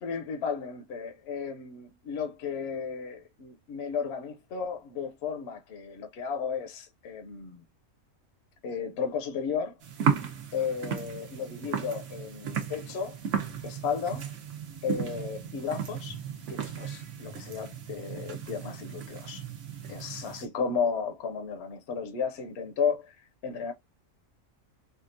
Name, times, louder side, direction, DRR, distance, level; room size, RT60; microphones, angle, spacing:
voice 1, 0.0-7.6 8.6-9.8 10.5-13.2 13.6-14.3 14.8-16.2 16.5-19.4 19.9-23.2 23.4-23.7, left 6 dB, 60° left, 0.8 m, -34 dB
sound 1, 9.8-20.5, right 7 dB, 65° right, 1.1 m, -35 dB
3.6 x 2.3 x 2.5 m
omnidirectional pair, 1.4 m